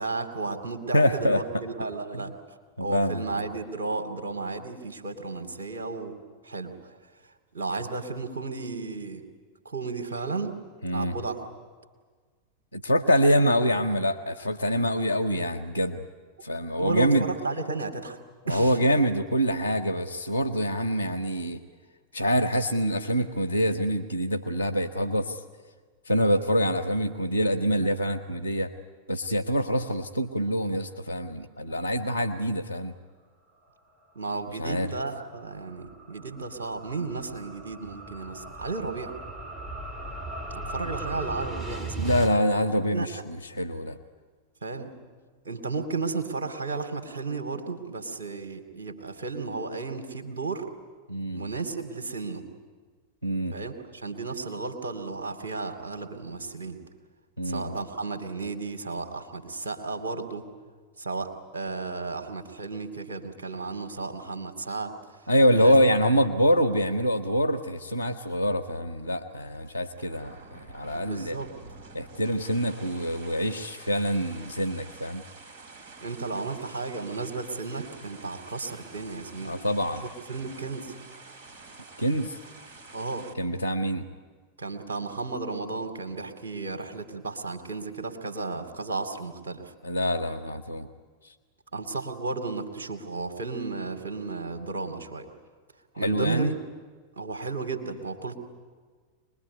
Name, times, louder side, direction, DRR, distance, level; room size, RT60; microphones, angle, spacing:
voice 1, 0.0-6.2 6.4-6.7 7.5-9.2 9.6-10.6 10.9-11.4 16.8-18.2 18.5-18.8 34.1-39.1 40.5-42.1 42.9-43.2 44.6-44.9 45.4-50.7 51.3-52.5 53.5-56.8 57.4-60.5 61.0-65.0 65.5-65.8 70.9-71.5 76.0-79.5 80.0-80.9 82.9-83.3 84.6-89.7 91.7-95.3 96.0-96.6 97.2-98.4, right 3 dB, 65° right, 6 dB, 2.7 m, -33 dB
voice 2, 0.9-1.4 2.1-2.2 2.8-3.5 10.8-11.2 12.7-16.1 16.4-17.2 18.5-21.6 22.1-25.4 26.1-28.7 29.1-32.9 34.6-34.9 42.0-44.0 51.1-51.5 53.2-53.6 57.4-57.8 65.3-71.4 71.9-75.2 79.4-80.0 82.0-82.3 83.4-84.1 89.8-90.9 91.2-91.3 95.9-96.5, equal, 85° right, 8 dB, 1.1 m, -25 dB
sound 1, 34.5-42.3, right 2 dB, 20° right, 2.1 m, -38 dB
sound 2, 69.5-83.3, right 3 dB, 45° right, 3.1 m, -48 dB
25.5 x 21.0 x 9.5 m, 1.5 s
figure-of-eight pair, 90°, 0 cm